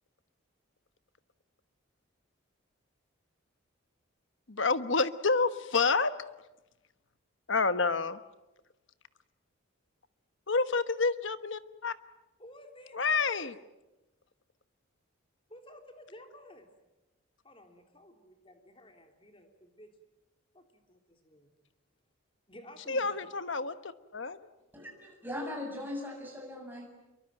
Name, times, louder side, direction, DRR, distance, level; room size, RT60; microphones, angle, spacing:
voice 1, 4.5-6.1 7.5-8.2 10.5-11.9 12.9-13.5 22.9-23.7 24.1-24.4, left 4 dB, 60° left, 12 dB, 1.3 m, -28 dB
voice 2, 12.4-13.5 15.5-16.7 17.4-20.0 20.5-21.5 22.5-23.3, left 1 dB, 25° left, 5 dB, 3.5 m, -53 dB
voice 3, 24.7-26.9, left 1 dB, 10° right, 0 dB, 7.3 m, -39 dB
27.5 x 23.5 x 9.1 m, 1.0 s
head